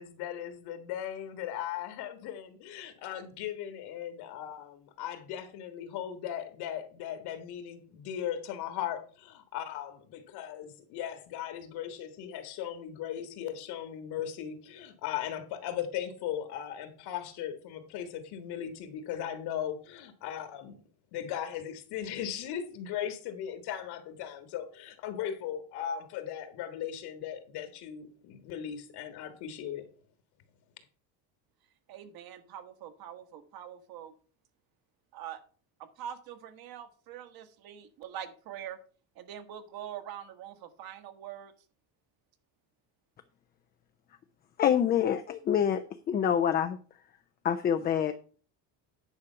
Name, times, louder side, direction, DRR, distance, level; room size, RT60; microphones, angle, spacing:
voice 1, 0.0-20.8 21.1-29.9, left 10 dB, 60° left, 1.6 m, -38 dB
voice 2, 31.9-34.1 35.1-35.4 35.8-38.8 39.1-41.5, right 10 dB, 55° right, 1.3 m, -44 dB
voice 3, 44.6-45.8 46.1-46.8 47.4-48.1, left 9 dB, 25° left, 0.4 m, -26 dB
9.8 x 5.0 x 5.6 m
cardioid pair, 155°, 44 cm